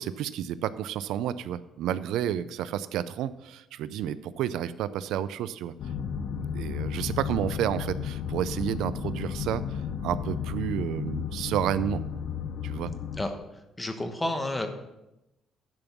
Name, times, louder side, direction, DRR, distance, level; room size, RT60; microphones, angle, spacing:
voice 1, 0.0-5.7 6.5-12.0 12.6-12.9, right 10 dB, 85° right, 15 dB, 0.4 m, -31 dB
sound 1, 5.8-13.3, left 7 dB, 65° left, 0.6 m, -33 dB
voice 2, 13.8-14.7, left 1 dB, 10° left, 6 dB, 1.1 m, -30 dB
10.5 x 5.3 x 5.9 m, 0.92 s
cardioid pair, 140°, 0 cm